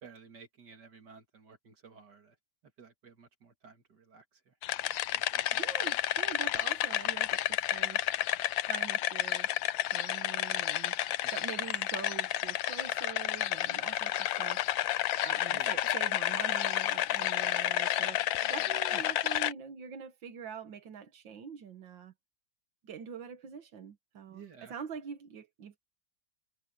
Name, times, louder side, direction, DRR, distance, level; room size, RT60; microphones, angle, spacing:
voice 1, 0.0-2.4 2.8-4.5 5.1-5.6 11.2-11.4 15.5-15.8 18.9-19.0 24.3-24.7, right 6 dB, 65° right, 2.8 m, -54 dB
sound 1, 4.6-19.5, left 14 dB, 85° left, 1.4 m, -31 dB
voice 2, 5.5-8.0 8.6-9.5 9.9-14.8 15.2-22.1 22.8-25.8, right 7 dB, 90° right, 2.1 m, -44 dB
omnidirectional pair, 2.0 m